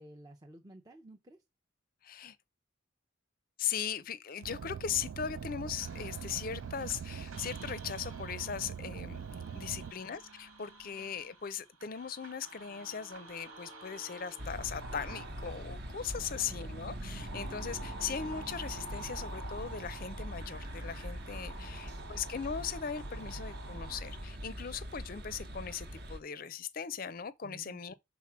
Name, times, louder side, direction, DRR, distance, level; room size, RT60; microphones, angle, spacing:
voice 1, 0.0-1.4 16.1-16.6 21.5-22.1 27.4-27.8, right 1 dB, 20° right, 0.6 m, -55 dB
voice 2, 2.0-2.4 3.6-9.2 9.5-27.9, left 7 dB, 45° left, 0.5 m, -39 dB
Car, 4.4-9.9, right 7 dB, 70° right, 0.3 m, -42 dB
sound 1, 5.8-24.2, right 2 dB, 90° right, 2.0 m, -50 dB
sound 2, 14.4-26.2, equal, 50° right, 1.0 m, -43 dB
5.9 x 3.7 x 6.0 m
head